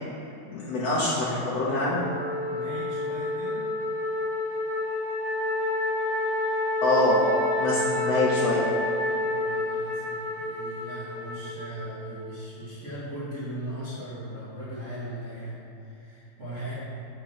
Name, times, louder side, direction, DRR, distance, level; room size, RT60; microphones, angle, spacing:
voice 1, 0.5-2.1 6.8-7.2 7.6-8.6, left 2 dB, 75° left, -9 dB, 1.5 m, -25 dB
Wind instrument woodwind instrument, 2.0-12.3, left 2 dB, 55° right, 1.7 m, -29 dB
voice 2, 2.5-3.6 9.2-16.7, right 1 dB, 80° right, -12 dB, 0.6 m, -38 dB
6.7 x 4.5 x 6.4 m, 2.9 s
omnidirectional pair, 4.5 m